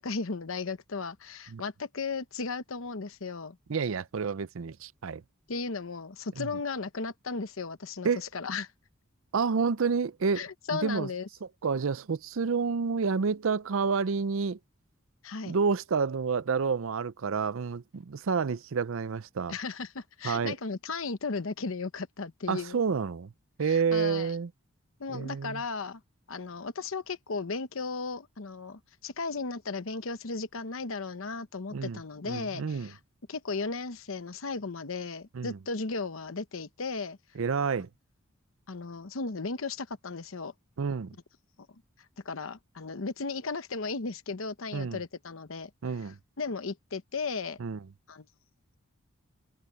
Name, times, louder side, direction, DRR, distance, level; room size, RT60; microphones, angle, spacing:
voice 1, 0.0-3.6 5.5-8.7 10.4-11.3 15.2-15.6 19.5-22.8 23.6-24.4 25.0-26.0 26.3-33.0 33.3-37.2 38.7-40.5 42.2-45.7 46.0-47.6 48.1-48.2, left 4 dB, 70° left, 0.9 m, -35 dB
voice 2, 3.7-5.2 6.4-6.5 8.0-8.2 9.3-10.5 10.7-11.1 11.6-14.6 15.4-19.5 20.2-20.5 22.5-23.3 23.6-24.5 25.1-25.6 31.7-32.0 32.3-32.9 35.3-35.6 37.4-37.9 40.8-41.1 44.7-45.0 45.8-46.2 47.6-47.8, right 5 dB, 70° right, 0.5 m, -29 dB
head